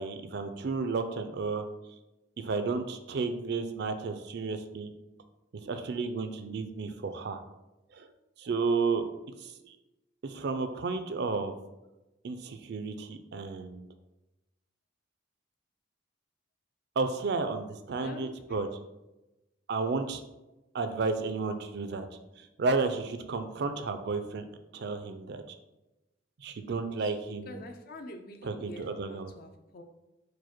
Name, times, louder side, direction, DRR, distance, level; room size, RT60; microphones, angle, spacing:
voice 1, 0.0-1.6 2.4-4.9 5.6-7.4 7.9-8.1 8.4-9.0 9.4-9.7 10.2-11.5 12.2-13.8 17.0-18.7 19.7-20.2 20.7-22.1 22.6-24.4 24.7-25.4 26.4-27.6 28.4-29.3, right 4 dB, 60° right, 8 dB, 0.4 m, -32 dB
voice 2, 18.0-18.7 27.0-29.8, left 1 dB, 50° left, 6 dB, 0.5 m, -47 dB
4.7 x 2.2 x 4.3 m, 0.98 s
head